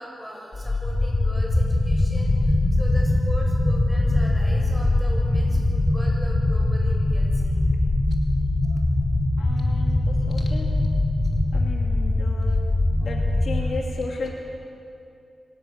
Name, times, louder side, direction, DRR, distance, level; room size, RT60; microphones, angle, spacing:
voice 1, 0.0-7.6 8.6-8.9 9.4-9.9 13.0-13.2 13.6-13.7, equal, 5° right, -2 dB, 7.0 m, -39 dB
sound 1, 0.5-13.7, left 2 dB, 35° left, 3.2 m, -22 dB
voice 2, 9.4-10.7 11.5-12.6 13.0-14.3, left 3 dB, 70° left, 0 dB, 2.7 m, -34 dB
27.0 x 18.0 x 6.5 m, 2.6 s
wide cardioid pair, 100°, 0 cm